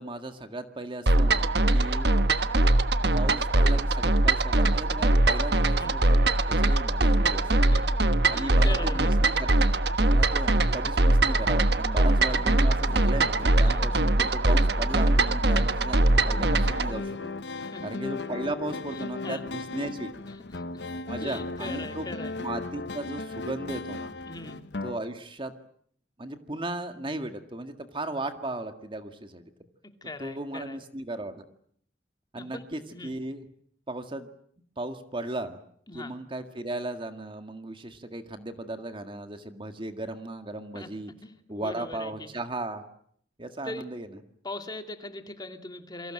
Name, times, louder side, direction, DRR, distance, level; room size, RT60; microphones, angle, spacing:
voice 1, 0.0-2.1 3.1-7.5 8.2-9.6 10.0-17.3 17.6-20.1 21.1-22.1 22.4-24.1 24.8-25.5 26.2-29.5 30.2-31.4 32.3-33.5 33.9-34.3 34.8-35.6 35.9-41.1 41.5-42.8 43.4-44.2, right 2 dB, 30° right, 7 dB, 1.9 m, -36 dB
sound 1, 1.1-16.9, right 2 dB, 65° right, 1.3 m, -22 dB
voice 2, 7.5-9.1 13.6-13.8 17.5-17.9 18.9-19.4 20.4-20.8 21.2-22.3 24.3-24.6 30.0-30.8 32.3-32.6 32.9-33.1 35.9-36.1 40.7-40.9 41.2-42.3 43.6-43.8 44.4-46.1, left 2 dB, 25° left, 6 dB, 2.6 m, -40 dB
sound 2, 12.0-25.0, left 3 dB, 75° left, 1.1 m, -38 dB
28.5 x 24.0 x 7.8 m, 0.64 s
head